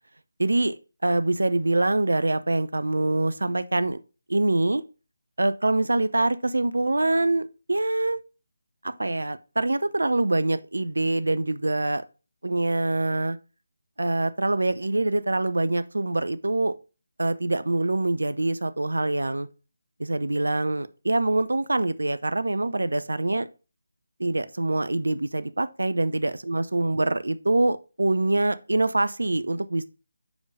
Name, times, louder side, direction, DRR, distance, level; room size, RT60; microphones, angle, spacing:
voice 1, 0.4-0.8 1.0-4.0 4.3-4.8 5.4-8.2 8.8-12.0 12.4-13.4 14.0-16.7 17.2-19.5 20.0-23.5 24.2-29.8, right 2 dB, 65° right, 0.5 m, -24 dB
5.5 x 5.0 x 4.8 m
figure-of-eight pair, 155°, 0 cm